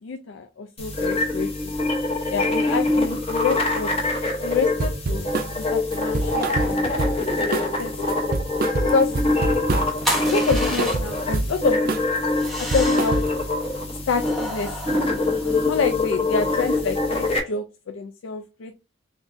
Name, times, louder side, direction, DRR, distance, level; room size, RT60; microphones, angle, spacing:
voice 1, 0.0-1.7 2.3-4.0 4.4-6.9 7.8-7.9 8.8-9.1 9.5-9.6 10.3-12.0 12.6-13.2 14.1-15.0 15.6-18.7, left 5 dB, 80° left, 9 dB, 0.4 m, -27 dB
sound 1, 0.8-17.4, left 2 dB, 30° left, 0.8 m, -24 dB
sound 2, 4.8-5.5 5.9-7.3 7.5-7.8 8.1-10.0 10.3-11.5 11.9-12.2 12.4-13.5, right 3 dB, 45° right, 0.4 m, -26 dB
sound 3, 10.0-11.3 12.3-13.3 14.2-15.8, equal, ahead, 0.9 m, -31 dB
3.9 x 3.4 x 2.5 m, 0.30 s
head